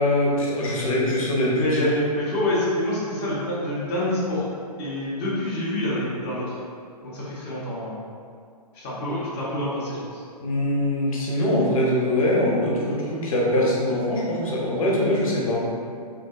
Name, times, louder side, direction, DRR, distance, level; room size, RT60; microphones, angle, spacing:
voice 1, 0.0-1.9 10.4-15.6, left 1 dB, 55° left, -5 dB, 0.6 m, -23 dB
voice 2, 1.5-4.4 4.8-6.5 7.0-8.0 8.7-10.2, left 1 dB, 20° left, -9 dB, 0.4 m, -27 dB
2.7 x 2.2 x 2.2 m, 2.3 s
figure-of-eight pair, 125°, 21 cm